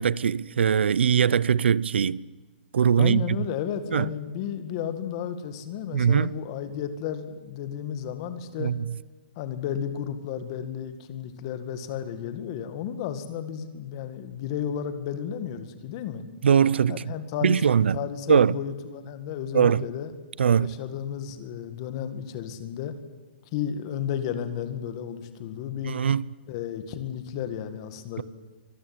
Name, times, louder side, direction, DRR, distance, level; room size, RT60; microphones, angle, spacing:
voice 1, 0.0-2.2 2.7-3.2 3.9-4.1 5.9-6.3 8.6-8.8 16.4-17.0 17.4-18.0 18.3-18.5 19.5-19.8 20.4-20.7 25.8-26.3, right 7 dB, 85° right, 0.7 m, -21 dB
voice 2, 3.0-8.7 9.4-16.2 16.9-20.1 20.6-22.9 23.5-25.9 26.5-28.2, left 9 dB, 30° left, 2.0 m, -33 dB
24.5 x 20.0 x 9.6 m
hypercardioid pair, 170°, 6 cm